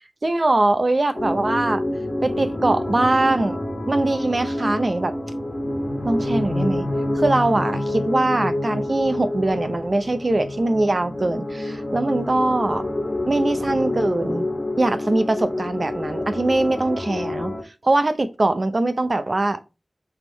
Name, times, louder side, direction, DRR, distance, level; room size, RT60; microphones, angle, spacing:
voice 1, 0.2-1.8 2.2-5.1 6.0-6.9 7.1-12.8 13.3-14.4 14.8-17.5 17.8-19.6, right 2 dB, 55° right, 0.8 m, -22 dB
sound 1, 1.2-17.6, left 1 dB, 40° left, 1.5 m, -27 dB
8.0 x 3.7 x 4.0 m
wide cardioid pair, 50°, 0 cm